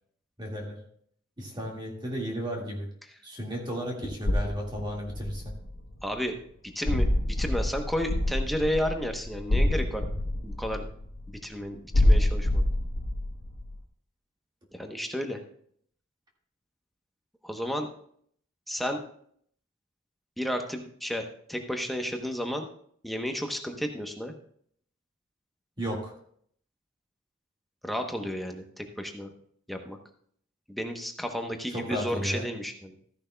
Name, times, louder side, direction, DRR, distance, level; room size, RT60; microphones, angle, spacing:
voice 1, 0.4-0.8 1.4-2.9 3.2-5.5 25.8-26.1 31.7-32.5, equal, 20° right, -1 dB, 1.9 m, -34 dB
sound 1, 4.3-6.0 6.9-11.3 11.9-13.8, left 1 dB, 70° left, 0.9 m, -26 dB
voice 2, 6.0-6.3 6.7-10.1 10.4-10.8 11.3-12.6 14.7-15.4 17.4-17.9 18.7-19.1 20.4-22.7 23.0-24.3 27.8-29.3 29.7-30.0 30.7-33.0, equal, ahead, 3 dB, 0.9 m, -32 dB
14.5 x 10.5 x 2.3 m, 0.62 s
head